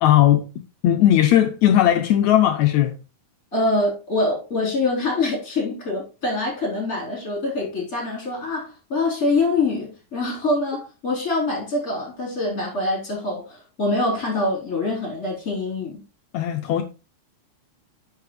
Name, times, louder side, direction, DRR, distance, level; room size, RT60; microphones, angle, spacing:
voice 1, 0.0-0.5 0.8-2.9 16.3-16.8, left 12 dB, 80° left, 1.7 m, -17 dB
voice 2, 3.5-16.0, left 2 dB, 25° left, 4.2 m, -24 dB
9.6 x 6.1 x 3.2 m
omnidirectional pair, 3.9 m